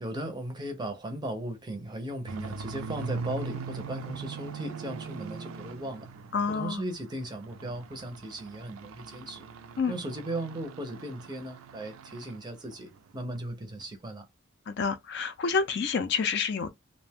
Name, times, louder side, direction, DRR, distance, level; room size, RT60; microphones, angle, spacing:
voice 1, 0.0-6.1 6.5-9.5 9.9-14.3, right 1 dB, 20° right, 0.5 m, -37 dB
sound 1, 2.2-6.8 7.2-12.4 12.7-13.0 13.4-13.5 13.8-13.9, right 5 dB, 85° right, 0.4 m, -41 dB
voice 2, 6.3-6.8 9.8-9.9 14.7-16.7, left 5 dB, 55° left, 0.4 m, -28 dB
2.5 x 2.1 x 3.4 m
head